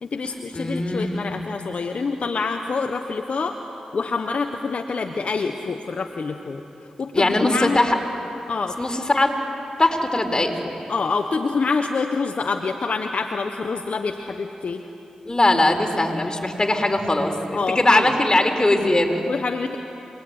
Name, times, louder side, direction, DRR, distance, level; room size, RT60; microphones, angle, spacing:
voice 1, 0.0-3.6 3.9-6.6 7.0-7.8 8.5-8.8 10.9-14.8 17.5-18.1 19.2-19.8, left 4 dB, 65° left, 5 dB, 1.4 m, -26 dB
voice 2, 0.5-1.3 7.1-8.0 8.8-9.3 9.8-10.5 15.2-19.2, left 2 dB, 30° left, 4 dB, 4.5 m, -20 dB
27.5 x 21.0 x 9.6 m, 2.8 s
supercardioid pair, 45°, 2 cm